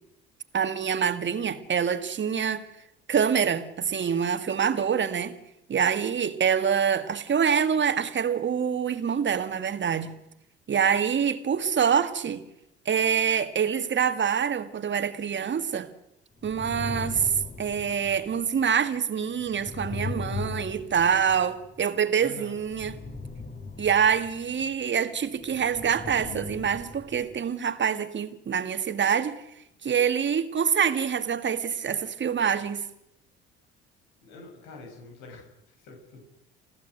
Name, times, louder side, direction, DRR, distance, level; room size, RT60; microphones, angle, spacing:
voice 1, 0.5-2.6 3.1-5.4 5.7-10.1 10.7-12.4 12.9-15.9 16.4-17.3 17.6-23.0 23.8-29.4 29.8-32.9, right 7 dB, 40° right, 2.1 m, -25 dB
sound 1, 16.4-18.7 19.3-22.0 22.6-24.8 25.3-27.3, left 4 dB, 30° left, 5.1 m, -39 dB
voice 2, 22.2-22.6 34.2-36.2, left 3 dB, 75° left, 7.0 m, -46 dB
28.0 x 15.5 x 8.0 m
hypercardioid pair, 65°, 29 cm